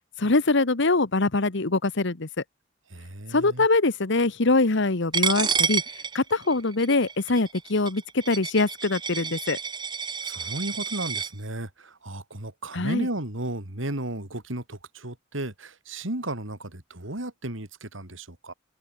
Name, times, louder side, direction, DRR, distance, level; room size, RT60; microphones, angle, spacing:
voice 1, 0.2-2.3 3.3-5.8 6.1-9.6 12.7-13.1, left 3 dB, 65° left, 1.3 m, -23 dB
voice 2, 2.9-3.7 10.2-18.5, right 1 dB, 75° right, 3.6 m, -34 dB
Coin (dropping), 5.1-11.3, right 6 dB, 25° right, 1.0 m, -29 dB
head